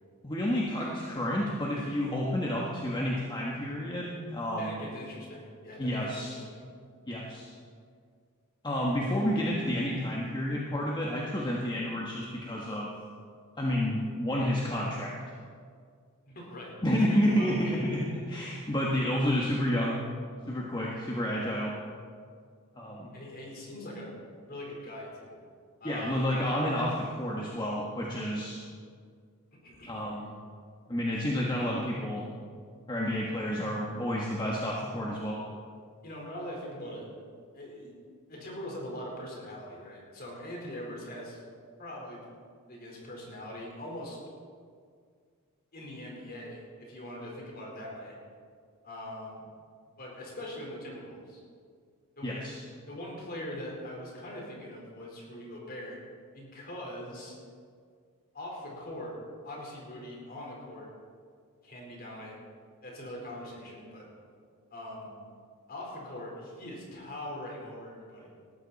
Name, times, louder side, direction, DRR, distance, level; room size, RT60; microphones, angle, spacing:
voice 1, 0.2-4.8 5.8-6.3 7.1-7.5 8.6-12.9 13.6-15.2 16.8-20.1 20.5-21.7 22.8-23.1 25.8-28.6 29.9-30.3 30.9-32.3 32.9-35.4 52.2-52.6, equal, 20° left, -3 dB, 1.5 m, -30 dB
voice 2, 4.6-6.7 16.3-17.7 23.1-24.2 24.5-25.4 25.8-26.2 29.6-30.0 36.0-37.1 37.5-37.9 38.3-41.4 41.8-42.2 42.7-44.2 45.7-48.2 48.8-49.4 50.0-51.4 52.2-52.6 52.9-56.0 56.3-57.3 58.3-59.2 59.4-60.9 61.6-62.4 62.8-64.1 64.7-65.1 65.7-68.3, left 1 dB, 40° left, -2 dB, 4.3 m, -42 dB
19.5 x 13.5 x 4.2 m, 2.1 s
head